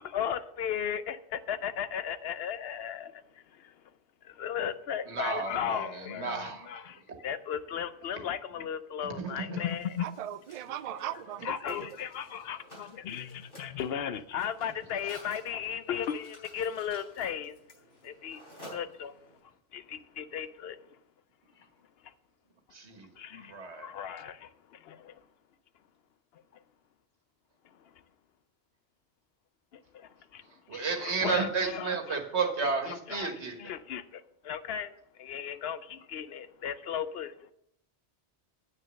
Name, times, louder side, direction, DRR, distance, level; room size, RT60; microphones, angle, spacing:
voice 1, 0.0-3.2 3.5-3.7 4.2-10.1 11.4-17.6 18.0-18.4 18.7-19.2 19.7-20.8 23.2-23.5 23.8-25.1 29.7-30.4 30.7-32.2 32.8-34.9 35.2-37.3, left 8 dB, 70° left, 0.8 m, -36 dB
voice 2, 5.1-6.7 9.2-9.6 22.7-23.1 23.4-23.9 30.7-33.7, right 4 dB, 90° right, 1.8 m, -32 dB
Mechanisms, 9.6-19.4, equal, 55° left, 4.1 m, -53 dB
voice 3, 10.0-12.0, right 11 dB, 55° right, 0.4 m, -39 dB
9.5 x 6.3 x 6.3 m
omnidirectional pair, 1.1 m